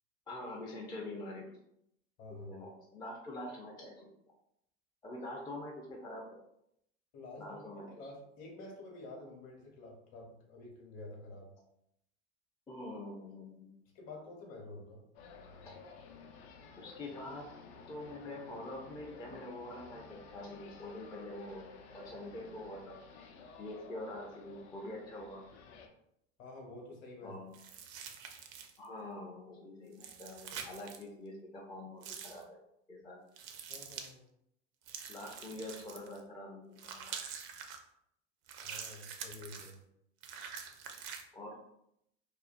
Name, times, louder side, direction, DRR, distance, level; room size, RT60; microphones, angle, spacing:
voice 1, 0.3-1.4 2.3-4.1 5.0-6.4 7.4-7.9 12.7-13.7 15.7-15.8 16.8-17.5 17.9-21.6 21.9-23.0 23.6-25.4 27.2-27.5 28.8-32.6 32.9-33.2 35.1-37.2 41.3-41.6, left 1 dB, 15° left, -2 dB, 0.4 m, -45 dB
voice 2, 2.2-2.5 7.1-11.5 13.9-15.1 26.4-27.4 33.7-34.2 38.6-39.8, left 2 dB, 50° left, 0 dB, 1.0 m, -49 dB
sound 1, 15.1-25.9, left 4 dB, 70° left, 0.5 m, -54 dB
sound 2, 27.5-28.9 29.9-31.0 32.0-32.4 33.4-34.1 34.9-36.2 36.8-37.8 38.5-39.7 40.2-41.2, right 7 dB, 55° right, 0.5 m, -46 dB
2.5 x 2.2 x 2.4 m, 0.76 s
hypercardioid pair, 95°, 34 cm